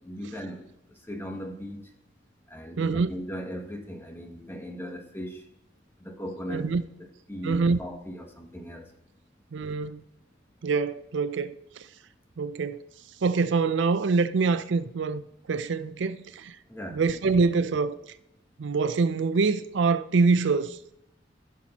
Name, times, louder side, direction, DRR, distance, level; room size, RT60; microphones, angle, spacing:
voice 1, 0.0-1.9 2.5-5.5 6.0-6.7 7.3-8.9 16.7-17.0, equal, 10° left, 1.1 m, -38 dB
voice 2, 2.8-3.1 6.5-6.8 7.4-7.8 9.5-10.0 10.6-11.6 12.4-12.8 13.2-15.2 15.5-16.6 16.9-18.0 18.6-20.8, right 4 dB, 70° right, 0.5 m, -25 dB
15.0 x 5.9 x 2.9 m
head